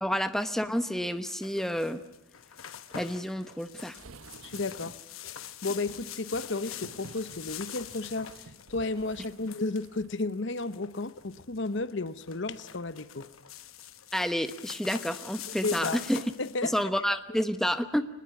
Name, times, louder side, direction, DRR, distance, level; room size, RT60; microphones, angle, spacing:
voice 1, 0.0-2.0 2.9-4.0 14.1-16.2 16.6-18.1, equal, ahead, 10 dB, 1.0 m, -29 dB
sound 1, 1.2-16.8, left 10 dB, 85° left, 1.1 m, -44 dB
sound 2, 3.9-5.1 5.8-10.3 10.6-10.7, right 3 dB, 90° right, 1.1 m, -51 dB
voice 2, 4.4-13.3 15.6-16.0 16.4-16.7, left 3 dB, 60° left, 14 dB, 0.9 m, -33 dB
23.5 x 20.5 x 9.5 m, 0.87 s
head